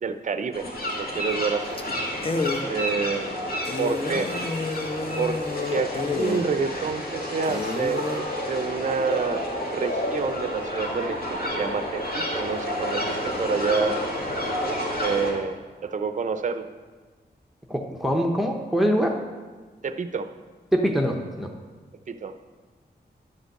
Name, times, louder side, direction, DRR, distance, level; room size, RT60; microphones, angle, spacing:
voice 1, 0.0-1.8 2.7-3.5 3.8-4.3 5.2-5.4 5.7-14.0 14.6-16.7 19.8-20.3 22.1-22.4, right 5 dB, 45° right, 9 dB, 0.5 m, -28 dB
sound 1, 0.5-15.3, equal, 60° left, 2.1 m, -30 dB
sound 2, 1.2-1.5 1.8-1.9 2.2-2.6 3.1-3.2 3.6-6.4 7.0-7.1 7.4-8.2, left 4 dB, 35° left, 0.7 m, -30 dB
voice 2, 17.7-19.1 20.7-21.5, equal, ahead, 2 dB, 0.7 m, -23 dB
10.5 x 5.2 x 6.5 m, 1.4 s
wide cardioid pair, 125°, 18 cm